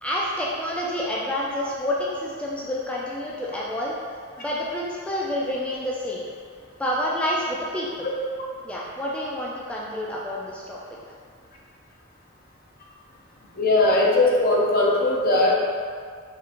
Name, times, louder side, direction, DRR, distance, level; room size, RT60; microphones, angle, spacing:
voice 1, 0.0-4.0 4.4-6.2 6.8-8.1 8.6-10.8, left 1 dB, 5° left, -5 dB, 0.3 m, -28 dB
voice 2, 13.6-15.5, left 2 dB, 50° left, -3 dB, 0.7 m, -19 dB
4.3 x 3.8 x 2.5 m, 2.1 s
head